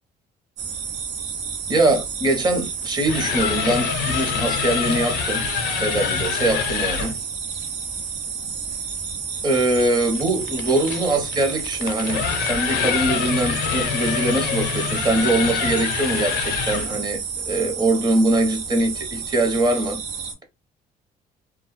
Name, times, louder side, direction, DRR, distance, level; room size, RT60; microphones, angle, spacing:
sound 1, 0.6-20.3, right 6 dB, 80° right, 0.7 m, -31 dB
voice 1, 1.7-5.4 5.8-7.1 9.4-20.0, right 2 dB, 25° right, 0.8 m, -22 dB
sound 2, 2.9-7.2 9.8-17.0, left 8 dB, 80° left, 0.5 m, -26 dB
2.2 x 2.0 x 3.0 m
cardioid pair, 110°, 17 cm